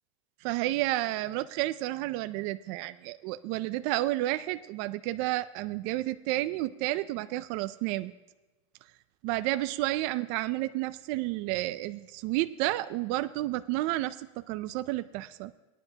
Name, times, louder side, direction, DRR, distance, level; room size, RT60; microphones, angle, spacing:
voice 1, 0.4-8.1 9.2-15.5, right 17 dB, 50° right, 11 dB, 0.4 m, -31 dB
18.5 x 10.0 x 2.8 m, 1.1 s
supercardioid pair, 145°, 15 cm